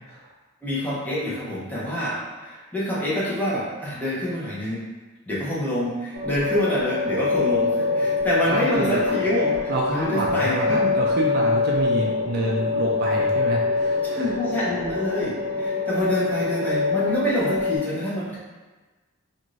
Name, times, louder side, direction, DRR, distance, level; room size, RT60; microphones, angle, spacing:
voice 1, 0.6-4.8 5.3-11.0 14.1-18.4, left 1 dB, 10° left, -8 dB, 0.7 m, -26 dB
sound 1, 6.1-17.8, left 3 dB, 80° right, 0.7 m, -24 dB
voice 2, 8.5-9.1 9.7-14.3, right 1 dB, 50° right, -2 dB, 0.4 m, -28 dB
2.6 x 2.5 x 3.1 m, 1.3 s
head